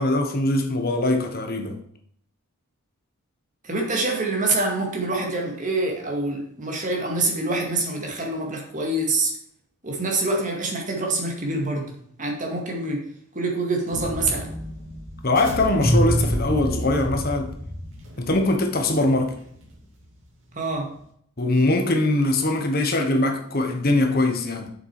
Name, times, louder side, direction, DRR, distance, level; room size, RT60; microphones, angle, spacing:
voice 1, 0.0-1.8 15.2-17.5 18.2-19.4 21.4-24.7, left 2 dB, 45° left, 1.2 m, -22 dB
voice 2, 3.6-9.3 9.8-13.1 13.3-14.5 20.5-20.9, right 2 dB, 35° right, 2.2 m, -26 dB
sound 1, 13.9-20.0, equal, 60° right, 2.7 m, -27 dB
7.7 x 6.7 x 4.8 m
head